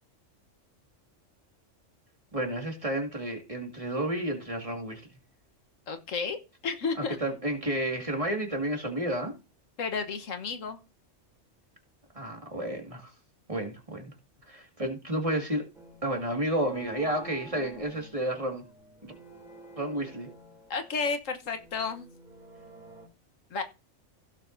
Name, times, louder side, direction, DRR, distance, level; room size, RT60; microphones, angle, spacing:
voice 1, 2.3-5.0 7.0-9.3 12.1-13.1 13.5-14.1 14.5-15.7 16.0-18.6 19.0-19.1 19.8-20.3, right 1 dB, 25° right, 2.1 m, -31 dB
voice 2, 5.9-6.4 6.6-7.2 9.8-10.8 20.7-22.1 23.5-23.6, left 5 dB, 85° left, 1.5 m, -32 dB
sound 1, 15.7-23.1, right 1 dB, ahead, 3.1 m, -51 dB
16.0 x 7.2 x 2.6 m
omnidirectional pair, 1.3 m